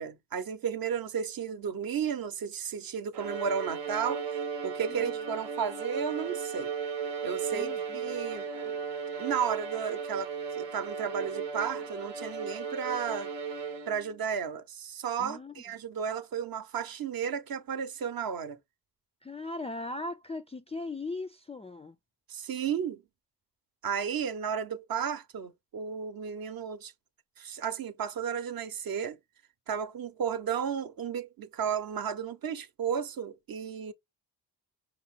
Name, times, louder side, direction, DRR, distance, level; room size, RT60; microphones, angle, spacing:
voice 1, 0.0-4.2 4.6-6.7 7.2-8.5 9.2-13.3 13.9-18.6 22.3-23.0 23.8-26.9 27.4-29.2 29.7-33.9, right 7 dB, 55° right, 0.8 m, -33 dB
Bowed string instrument, 3.1-14.2, right 6 dB, 85° right, 0.9 m, -36 dB
voice 2, 4.9-5.2 7.5-8.2 15.2-15.6 19.2-22.0, left 2 dB, 15° left, 0.3 m, -39 dB
5.3 x 2.0 x 3.5 m
supercardioid pair, 45°, 43 cm